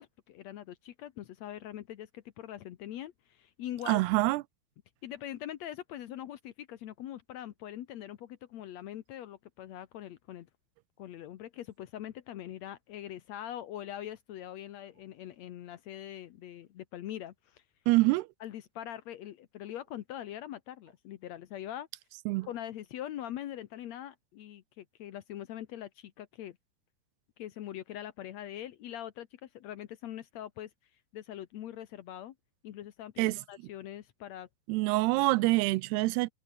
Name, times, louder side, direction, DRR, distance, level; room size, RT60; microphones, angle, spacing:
voice 1, 0.0-4.0 5.0-10.5 11.0-17.6 18.4-21.9 22.4-26.6 27.4-32.3 32.6-34.5, left 11 dB, 85° left, 1.5 m, -43 dB
voice 2, 3.9-4.4 17.9-18.3 22.3-22.5 33.2-33.4 34.7-36.3, right 21 dB, 80° right, 2.6 m, -26 dB
omnidirectional pair, 4.8 m